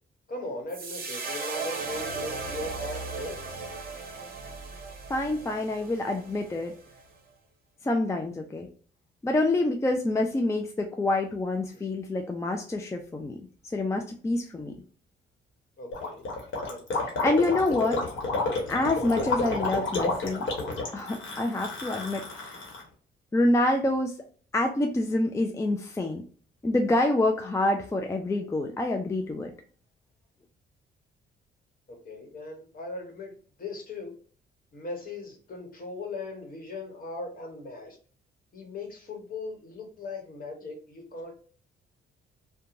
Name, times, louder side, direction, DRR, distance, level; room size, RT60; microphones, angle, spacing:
voice 1, 0.3-3.6 11.7-11.8 15.8-16.2 16.5-17.1 32.0-33.3 33.6-34.1 34.7-38.0 38.5-41.3, left 2 dB, 45° left, 2 dB, 1.2 m, -39 dB
sound 1, 0.7-7.0, right 4 dB, 45° right, 0.8 m, -37 dB
voice 2, 5.1-6.7 7.8-8.7 9.2-13.4 13.7-14.7 17.2-18.0 18.7-20.4 20.9-22.6 23.3-24.1 24.5-26.2 26.6-29.5, left 2 dB, 15° left, 3 dB, 0.4 m, -27 dB
Gurgling, 15.9-22.8, left 3 dB, 75° left, 1.1 m, -30 dB
2.9 x 2.2 x 2.5 m, 0.43 s
cardioid pair, 90°, 20 cm